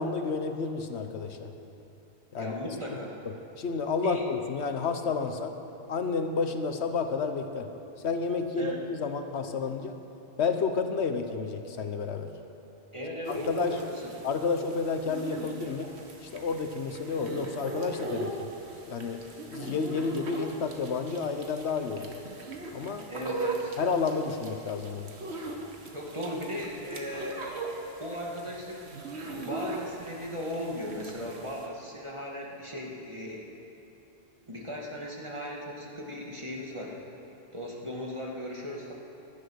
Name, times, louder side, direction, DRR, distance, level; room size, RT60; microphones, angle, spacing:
voice 1, 0.0-1.5 2.3-2.5 3.6-5.6 5.9-7.7 8.0-10.0 10.4-12.3 13.3-13.8 14.2-15.9 16.2-18.5 18.9-19.2 19.5-22.2 22.7-23.1 23.8-25.1, left 5 dB, 90° left, 7 dB, 1.2 m, -30 dB
voice 2, 2.4-3.1 4.0-4.3 8.6-8.8 12.9-14.1 23.1-23.8 25.9-27.4 28.0-28.9 29.2-33.5 34.5-37.0 37.5-38.9, equal, 25° right, -3 dB, 2.2 m, -37 dB
sound 1, 13.2-31.7, right 2 dB, 80° right, 1.7 m, -40 dB
16.5 x 11.5 x 6.4 m, 2.9 s
omnidirectional pair, 1.1 m